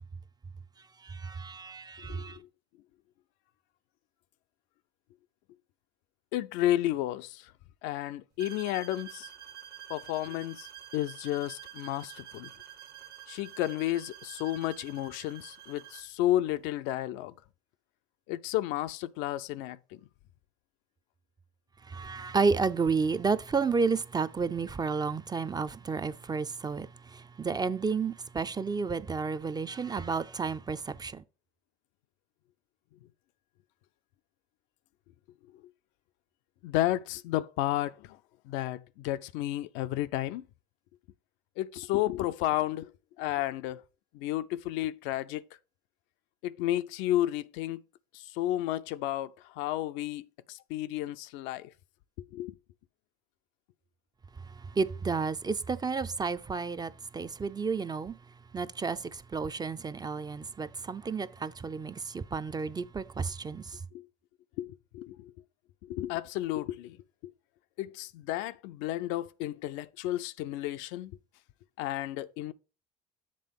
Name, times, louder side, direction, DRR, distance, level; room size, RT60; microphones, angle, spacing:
voice 1, 1.0-2.4 21.8-31.2 54.4-58.2 58.5-63.8, right 4 dB, 20° right, 0.4 m, -31 dB
voice 2, 2.1-2.5 6.3-7.5 7.8-9.3 9.9-10.7 10.9-12.5 13.3-17.3 18.3-20.0 36.6-38.2 38.4-40.5 41.6-42.9 43.2-43.8 44.1-45.4 46.4-47.8 48.1-51.7 52.2-52.6 63.9-64.1 64.6-65.3 65.8-67.0 67.2-67.3 67.8-71.2 71.8-72.5, left 14 dB, 70° left, 0.4 m, -32 dB
sound 1, 8.4-16.1, right 11 dB, 50° right, 1.1 m, -48 dB
7.6 x 3.5 x 5.3 m
hypercardioid pair, 75°, 20 cm